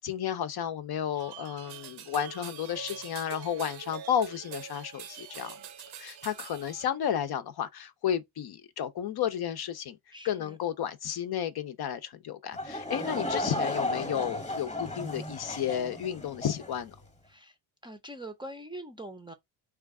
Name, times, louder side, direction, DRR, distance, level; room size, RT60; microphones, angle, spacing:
voice 1, 0.0-5.6 6.0-10.0 10.2-17.0, left 9 dB, 50° left, 0.7 m, -32 dB
sound 1, 1.1-6.9, right 8 dB, 55° right, 0.7 m, -44 dB
voice 2, 10.1-10.6 17.3-17.5 17.8-19.3, right 1 dB, 10° right, 0.5 m, -43 dB
Laughter / Crowd, 12.5-16.7, left 2 dB, 15° left, 1.0 m, -34 dB
3.2 x 2.3 x 3.6 m
supercardioid pair, 75°, 48 cm